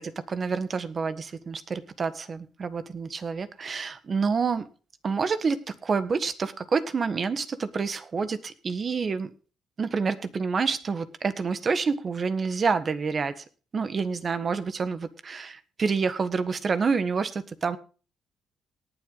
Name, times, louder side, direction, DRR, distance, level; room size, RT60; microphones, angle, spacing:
voice 1, 0.3-4.7 5.0-9.3 9.8-13.4 13.7-17.8, right 5 dB, 40° right, 12 dB, 1.4 m, -28 dB
18.5 x 7.8 x 3.9 m, 0.36 s
cardioid pair, 90°, 0 cm